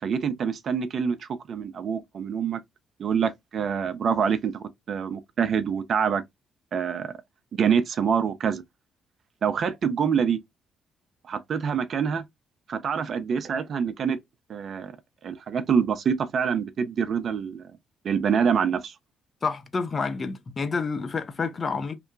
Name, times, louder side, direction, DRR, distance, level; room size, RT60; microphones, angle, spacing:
voice 1, 0.0-2.6 3.0-6.2 6.7-7.1 7.6-8.6 9.4-10.4 11.3-12.2 12.7-14.2 14.5-14.9 15.2-17.7 18.0-18.9, right 7 dB, 50° right, 0.4 m, -26 dB
voice 2, 19.4-22.0, left 4 dB, 35° left, 0.5 m, -29 dB
2.9 x 2.1 x 2.5 m
figure-of-eight pair, 45°, 0 cm